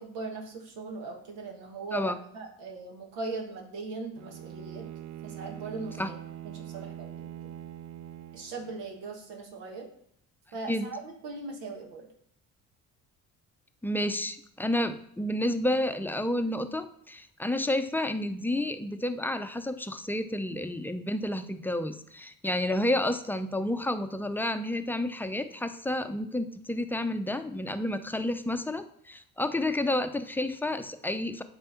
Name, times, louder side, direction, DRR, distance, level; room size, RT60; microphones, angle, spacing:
voice 1, 0.0-4.8 5.2-6.1 6.4-7.5 8.3-9.9 10.5-12.1, right 3 dB, 85° right, 1 dB, 1.5 m, -39 dB
Bowed string instrument, 4.1-9.0, right 11 dB, 50° right, 0.4 m, -43 dB
voice 2, 13.8-31.4, left 1 dB, 5° left, 9 dB, 0.6 m, -30 dB
8.3 x 3.5 x 5.7 m, 0.67 s
supercardioid pair, 75°, 37 cm